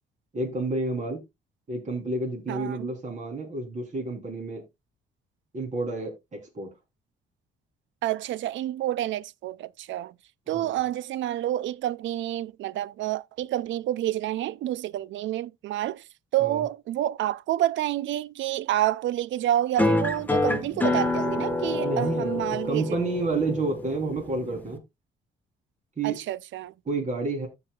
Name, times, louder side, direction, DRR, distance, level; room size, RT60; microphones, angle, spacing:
voice 1, 0.3-1.2 1.7-4.6 5.5-6.7 10.5-10.7 16.4-16.6 21.6-24.8 26.0-26.2 26.9-27.5, right 2 dB, 40° right, 3.6 m, -30 dB
voice 2, 2.5-2.9 8.0-10.1 10.5-16.1 16.3-23.0 26.0-26.7, right 13 dB, 75° right, 0.5 m, -28 dB
sound 1, 19.8-24.8, left 2 dB, 10° left, 1.3 m, -27 dB
14.5 x 4.9 x 2.3 m
cardioid pair, 90°, 20 cm